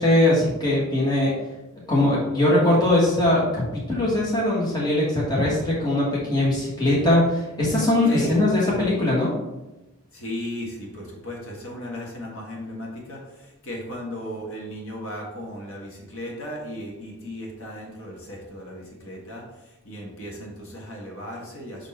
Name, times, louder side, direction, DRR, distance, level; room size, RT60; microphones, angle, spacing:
voice 1, 0.0-1.3 1.9-9.3, left 1 dB, 20° left, -5 dB, 1.4 m, -21 dB
voice 2, 8.0-8.4 10.1-21.9, equal, 60° left, -2 dB, 1.6 m, -36 dB
5.9 x 4.0 x 4.4 m, 0.98 s
head